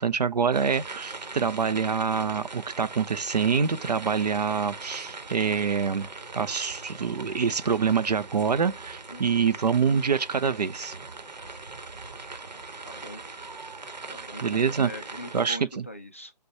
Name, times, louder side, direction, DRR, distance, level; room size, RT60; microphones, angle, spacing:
voice 1, 0.0-6.1 6.3-11.0 14.4-14.9 15.3-15.9, right 6 dB, 75° right, 0.6 m, -26 dB
sound 1, 0.5-15.5, right 3 dB, 90° right, 1.0 m, -41 dB
voice 2, 9.1-9.5 12.8-13.2 14.1-16.3, equal, 20° left, 0.3 m, -42 dB
5.3 x 2.3 x 4.4 m
figure-of-eight pair, 160°, 21 cm